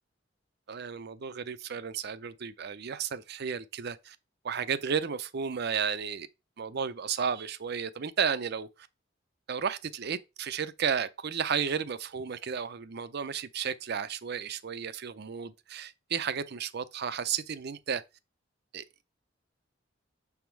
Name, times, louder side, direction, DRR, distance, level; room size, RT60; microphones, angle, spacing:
voice 1, 0.7-4.2 4.4-6.3 6.6-8.7 9.5-18.0 18.7-18.8, right 7 dB, 60° right, 0.6 m, -33 dB
6.1 x 3.6 x 4.5 m
head